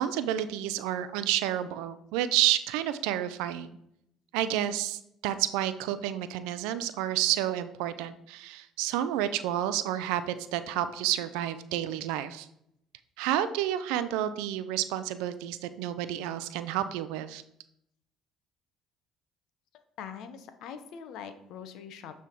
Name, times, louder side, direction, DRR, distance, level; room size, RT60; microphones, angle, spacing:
voice 1, 0.0-3.8 4.3-12.5 13.2-17.4, right 12 dB, 85° right, 12 dB, 0.4 m, -30 dB
voice 2, 20.0-22.2, left 7 dB, 70° left, 9 dB, 0.8 m, -43 dB
8.2 x 3.5 x 4.5 m, 0.75 s
supercardioid pair, 75°, 0 cm